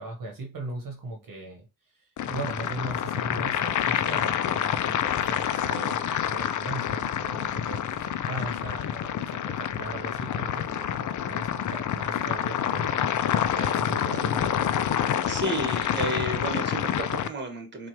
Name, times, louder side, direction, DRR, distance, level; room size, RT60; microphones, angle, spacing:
voice 1, 0.0-14.7, right 2 dB, 50° right, 3 dB, 1.2 m, -39 dB
sound 1, 2.2-17.3, left 9 dB, 45° left, 0.5 m, -28 dB
voice 2, 15.3-17.9, right 1 dB, 25° right, 4 dB, 1.4 m, -32 dB
4.3 x 2.5 x 3.0 m, 0.29 s
cardioid pair, 75°, 43 cm